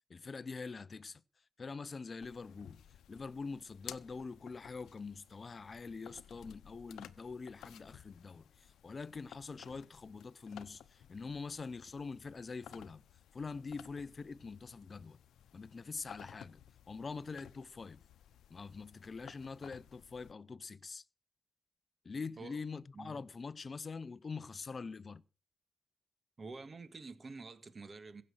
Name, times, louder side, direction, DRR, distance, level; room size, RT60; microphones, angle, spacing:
voice 1, 0.1-2.8 3.1-13.0 13.3-15.2 15.5-18.0 18.5-21.1 22.0-25.2, left 4 dB, 35° left, 0.6 m, -44 dB
sound 1, 2.2-20.3, left 10 dB, 85° left, 0.8 m, -56 dB
voice 2, 26.4-28.2, right 3 dB, 35° right, 1.7 m, -48 dB
16.0 x 7.7 x 6.3 m
cardioid pair, 105°, 0 cm